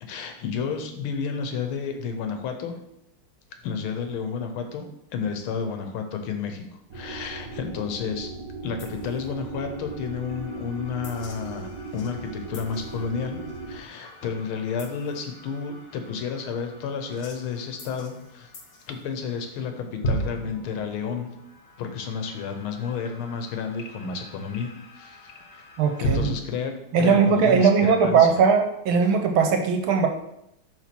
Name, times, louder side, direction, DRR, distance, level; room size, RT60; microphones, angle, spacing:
voice 1, 0.0-2.8 3.6-4.9 5.1-6.7 6.9-8.3 8.6-13.4 13.7-18.5 18.9-21.3 21.8-25.2 25.5-25.6 26.0-28.3, left 6 dB, 80° left, 6 dB, 1.7 m, -31 dB
sound 1, 6.9-13.8, right 3 dB, 55° right, 1.3 m, -38 dB
sound 2, 8.8-26.3, right 1 dB, 55° left, 0.7 m, -38 dB
voice 2, 25.8-26.3 26.9-30.1, right 6 dB, 80° right, 5 dB, 1.6 m, -19 dB
6.2 x 3.5 x 6.0 m, 0.78 s
omnidirectional pair, 2.3 m